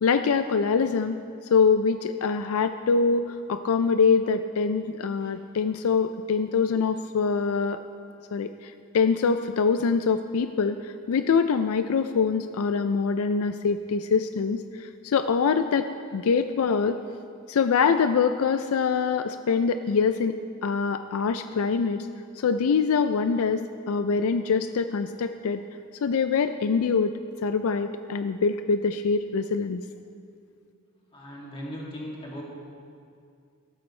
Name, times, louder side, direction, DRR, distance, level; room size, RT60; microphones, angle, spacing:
voice 1, 0.0-1.2 1.5-7.8 8.3-15.9 16.1-17.0 17.5-20.3 20.6-22.1 22.4-23.6 23.9-25.6 26.0-27.1 27.4-29.8, left 5 dB, 75° left, 9 dB, 0.4 m, -24 dB
voice 2, 31.1-32.4, equal, 25° left, -4 dB, 2.4 m, -38 dB
14.5 x 12.5 x 3.2 m, 2.4 s
head